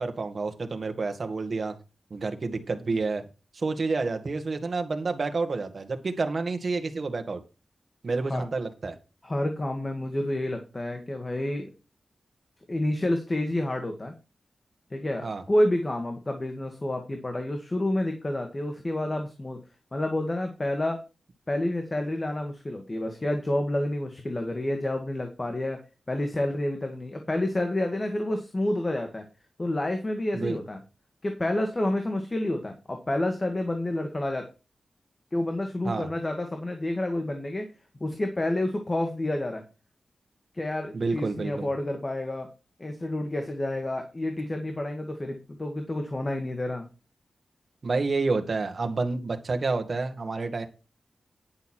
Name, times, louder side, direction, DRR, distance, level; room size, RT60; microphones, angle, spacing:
voice 1, 0.0-1.8 2.1-3.2 3.5-7.4 8.0-8.9 15.2-15.4 30.3-30.6 35.8-36.1 40.9-41.7 47.8-50.7, right 3 dB, 50° right, 6 dB, 1.7 m, -29 dB
voice 2, 9.2-11.7 12.7-14.1 14.9-19.6 19.9-21.0 21.5-25.8 26.1-29.2 29.6-30.8 31.2-34.5 35.3-37.7 38.0-39.6 40.5-42.5 42.8-46.9, left 1 dB, 30° left, 5 dB, 1.8 m, -29 dB
10.5 x 6.5 x 4.5 m, 0.31 s
wide cardioid pair, 95°, 0 cm